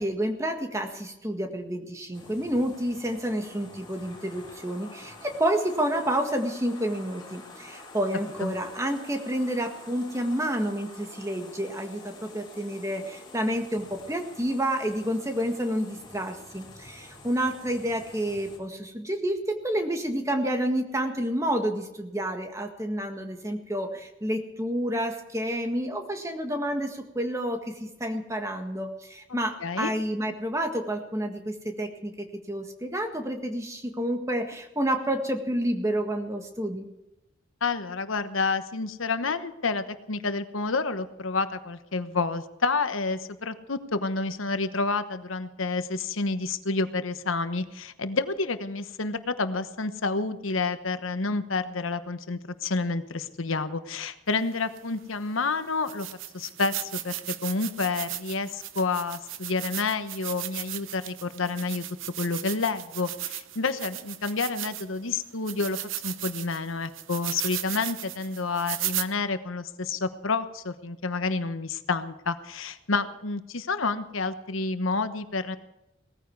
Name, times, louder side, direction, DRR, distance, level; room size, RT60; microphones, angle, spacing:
voice 1, 0.0-36.9, right 1 dB, 15° right, 5 dB, 1.7 m, -29 dB
sound 1, 2.1-18.6, left 2 dB, 20° left, 3.5 m, -48 dB
voice 2, 29.6-29.9 37.6-56.1 56.3-61.8 62.2-65.8 66.0-75.6, left 3 dB, 80° left, 11 dB, 1.1 m, -29 dB
sound 2, 54.8-54.9 55.4-55.5 55.9-65.0 65.5-69.1, right 13 dB, 80° right, 1.0 m, -36 dB
18.5 x 14.5 x 4.7 m, 0.92 s
head